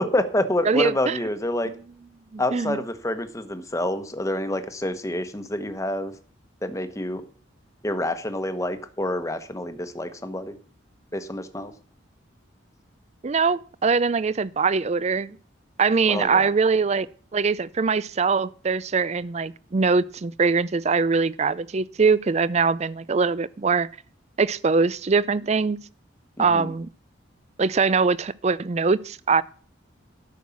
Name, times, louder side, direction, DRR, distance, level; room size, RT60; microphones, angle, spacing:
voice 1, 0.0-1.7 2.4-6.1 6.6-7.2 7.8-10.6 11.1-11.7 16.1-16.5 26.4-26.7, left 1 dB, 15° left, 1.1 m, -27 dB
voice 2, 0.7-1.2 2.3-2.8 13.2-15.4 15.8-17.1 17.3-23.9 24.4-25.8 26.4-26.9 27.6-29.4, right 4 dB, 35° right, 0.4 m, -22 dB
12.5 x 6.4 x 7.1 m
head